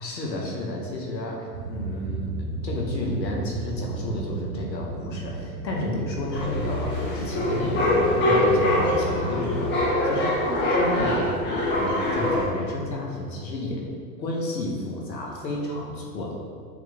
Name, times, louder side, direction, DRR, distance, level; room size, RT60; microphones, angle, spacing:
voice 1, 0.0-10.4 10.7-11.4 11.7-13.9 14.2-16.3, left 1 dB, 90° left, -1 dB, 1.5 m, -31 dB
sound 1, 1.5-9.8, right 2 dB, 70° right, 1.0 m, -33 dB
sound 2, 6.3-12.5, left 1 dB, 20° left, 1.3 m, -24 dB
7.6 x 3.3 x 3.7 m, 2.1 s
hypercardioid pair, 120°, 50 cm